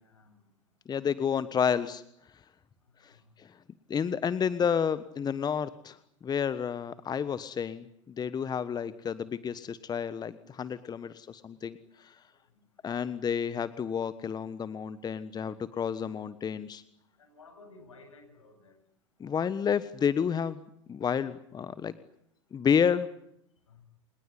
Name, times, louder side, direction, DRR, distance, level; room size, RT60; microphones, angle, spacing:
voice 1, 0.0-0.4 3.0-3.3 12.3-12.6 17.2-18.8 23.7-23.8, left 3 dB, 85° left, 7 dB, 8.0 m, -55 dB
voice 2, 0.9-2.0 3.0-3.1 3.4-3.5 3.9-12.1 12.8-16.8 19.2-20.6 20.9-21.9 22.5-23.1, left 7 dB, 25° left, 15 dB, 1.3 m, -30 dB
27.5 x 20.5 x 10.0 m, 0.75 s
hypercardioid pair, 85°, 16 cm